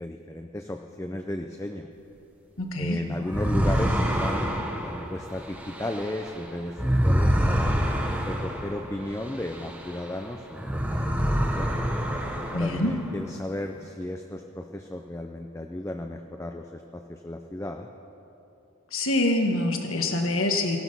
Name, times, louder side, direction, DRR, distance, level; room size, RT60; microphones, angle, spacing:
voice 1, 0.0-1.9 2.8-4.5 4.8-7.8 8.2-11.7 12.5-17.9, left 1 dB, 15° left, 4 dB, 0.4 m, -35 dB
voice 2, 2.6-3.0 12.5-12.9 18.9-20.8, left 1 dB, 75° left, 3 dB, 1.6 m, -25 dB
sound 1, 3.3-10.2 10.5-13.2, equal, 5° right, 0.8 m, -27 dB
16.5 x 12.0 x 5.5 m, 2.9 s
head